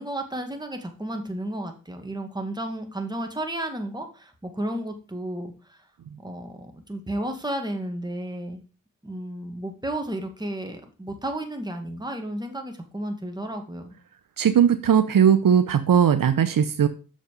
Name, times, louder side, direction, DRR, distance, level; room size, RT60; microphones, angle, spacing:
voice 1, 0.0-5.8 6.2-8.6 9.0-14.0, right 1 dB, 10° right, 4 dB, 1.9 m, -33 dB
voice 2, 14.4-16.9, right 8 dB, 70° right, 10 dB, 0.7 m, -18 dB
6.9 x 5.2 x 5.1 m, 0.36 s
cardioid pair, 55°, 35 cm